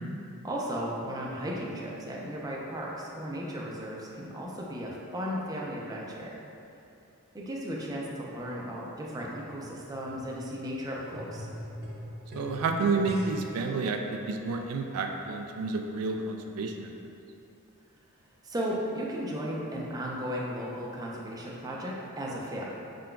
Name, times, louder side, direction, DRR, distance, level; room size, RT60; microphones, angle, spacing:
voice 1, 0.4-6.4 7.3-11.5 18.4-22.7, equal, 15° right, -4 dB, 0.5 m, -35 dB
sound 1, 9.2-13.6 14.4-14.5, equal, 45° right, 0.9 m, -43 dB
voice 2, 12.3-16.9, right 4 dB, 80° right, 4 dB, 0.3 m, -30 dB
5.6 x 3.8 x 2.2 m, 2.7 s
head